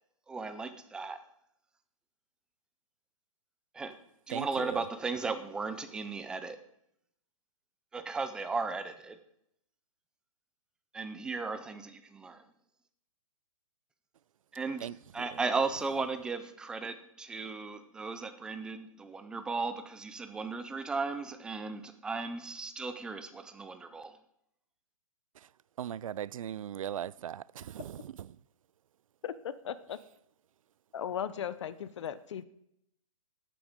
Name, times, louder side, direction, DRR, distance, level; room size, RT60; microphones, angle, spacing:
voice 1, 0.3-1.2 3.7-4.0 4.3-6.6 7.9-9.2 10.9-12.4 14.5-14.9 15.1-24.1, right 4 dB, 5° right, 0.4 m, -36 dB
voice 2, 4.3-4.9 14.8-15.0 15.3-15.4 25.4-25.5 25.8-28.4, right 10 dB, 70° right, 0.4 m, -39 dB
voice 3, 29.2-30.0 30.9-32.4, left 9 dB, 55° left, 0.7 m, -37 dB
11.5 x 9.2 x 5.1 m
hypercardioid pair, 155°, 18 cm